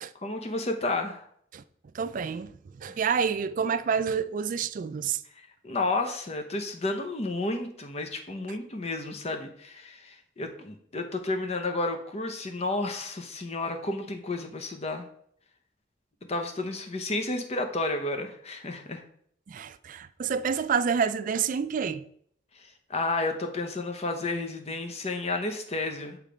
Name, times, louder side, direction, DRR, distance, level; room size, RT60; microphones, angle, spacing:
voice 1, 0.2-1.3 2.9-3.0 5.4-15.1 16.3-19.0 22.5-26.2, left 2 dB, 35° left, 0.8 m, -31 dB
voice 2, 1.9-2.5 2.8-5.2 19.5-22.0, right 6 dB, 45° right, 0.3 m, -28 dB
6.7 x 3.2 x 5.0 m
head